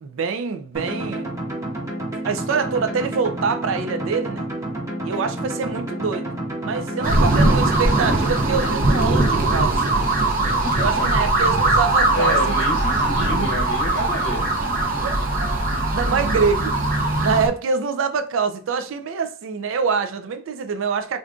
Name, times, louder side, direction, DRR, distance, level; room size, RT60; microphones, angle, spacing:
voice 1, 0.0-1.3 2.2-4.5 5.0-6.3 6.6-9.8 10.8-12.5 15.0-15.2 15.7-16.8 17.2-21.2, right 5 dB, 75° right, 0.4 m, -25 dB
sound 1, 0.7-8.7, right 1 dB, 15° right, 0.9 m, -29 dB
sound 2, 7.0-17.5, right 2 dB, 45° right, 0.7 m, -20 dB
voice 2, 10.4-11.1 12.1-14.5, left 1 dB, 55° left, 0.7 m, -29 dB
3.6 x 2.5 x 2.3 m
head